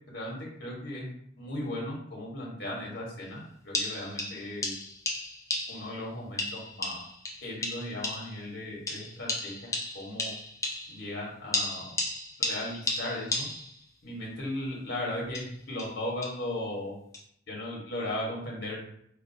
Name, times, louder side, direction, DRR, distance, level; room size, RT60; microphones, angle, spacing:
voice 1, 0.1-1.1 1.4-4.7 5.7-7.0 7.4-9.7 9.9-10.3 10.9-11.9 12.4-13.5 14.0-17.0 17.5-18.8, left 1 dB, 60° left, -2 dB, 1.2 m, -36 dB
sound 1, 3.2-3.3 3.7-6.0 6.4-8.5 8.9-11.1 11.5-13.8 15.2-16.5 17.1-17.2, left 2 dB, 15° left, 0.6 m, -34 dB
4.6 x 2.5 x 2.7 m, 0.68 s
head